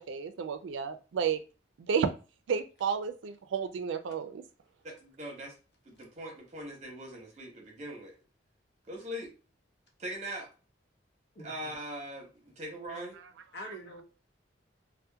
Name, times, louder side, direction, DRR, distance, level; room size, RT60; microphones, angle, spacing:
voice 1, 0.0-1.4 1.8-2.1 2.5-4.4, right 6 dB, 85° right, 10 dB, 0.3 m, -31 dB
voice 2, 4.8-5.5 5.8-8.2 8.9-9.3 10.0-10.5 11.4-13.2, right 1 dB, 35° right, 1 dB, 0.7 m, -41 dB
voice 3, 11.3-11.7 13.5-14.0, equal, 65° left, 0 dB, 0.8 m, -44 dB
2.7 x 2.1 x 2.2 m, 0.34 s
head